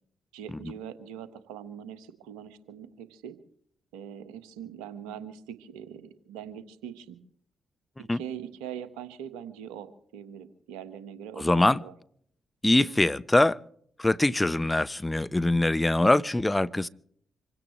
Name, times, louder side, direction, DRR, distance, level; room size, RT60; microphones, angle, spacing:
voice 1, 0.3-3.4 3.9-7.2 8.1-11.9, right 9 dB, 80° right, 1.3 m, -42 dB
voice 2, 11.4-11.8 12.6-13.6 14.0-16.9, left 2 dB, 15° left, 0.8 m, -23 dB
26.0 x 16.5 x 3.2 m
hypercardioid pair, 40°, 0 cm